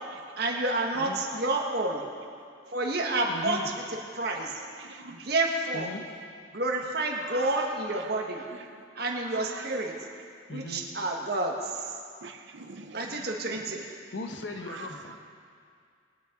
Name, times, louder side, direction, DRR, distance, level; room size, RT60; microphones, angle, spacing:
voice 1, 0.4-2.0 2.7-3.6 3.9-4.5 5.1-5.9 6.5-8.4 8.9-9.9 10.5-11.9 12.9-13.8, right 2 dB, 55° right, 1 dB, 1.5 m, -29 dB
voice 2, 3.3-3.7 5.7-6.0 10.5-10.9 13.5-13.6 14.1-15.2, left 2 dB, 75° left, 4 dB, 1.1 m, -38 dB
voice 3, 4.6-5.3 7.3-8.1 8.5-8.8 9.2-9.7 11.0-11.1 12.2-13.3 13.5-13.6 14.6-15.0, right 4 dB, 70° right, 6 dB, 0.8 m, -43 dB
20.5 x 8.8 x 3.9 m, 2.3 s
head